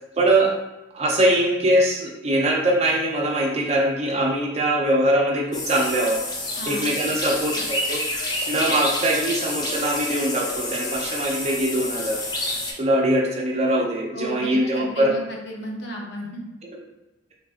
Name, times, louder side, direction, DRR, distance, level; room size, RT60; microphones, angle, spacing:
voice 1, 0.2-0.6 0.9-6.2 6.7-8.0 8.5-12.2 12.8-15.1, right 1 dB, 35° right, -1 dB, 0.5 m, -22 dB
sound 1, 5.5-12.7, left 1 dB, 20° left, 0.4 m, -29 dB
voice 2, 6.6-6.9 14.1-16.4, right 1 dB, 65° left, -1 dB, 0.7 m, -33 dB
3.2 x 2.4 x 2.5 m, 1.1 s
head